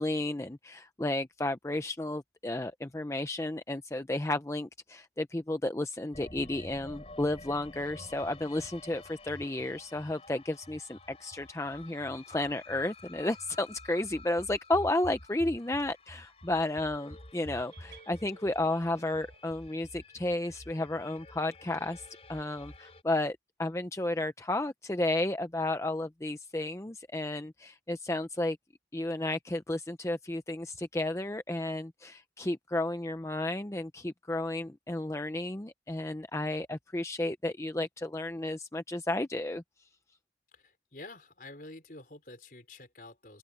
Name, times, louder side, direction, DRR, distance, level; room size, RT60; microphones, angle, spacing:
voice 1, 0.0-28.6 28.9-39.6, left 2 dB, 15° left, 0.6 m, -32 dB
sound 1, 6.1-23.0, left 2 dB, 35° left, 4.2 m, -49 dB
sound 2, 17.5-19.5, right 6 dB, 75° right, 4.4 m, -57 dB
voice 2, 40.5-43.4, left 2 dB, 50° left, 4.3 m, -48 dB
open air
head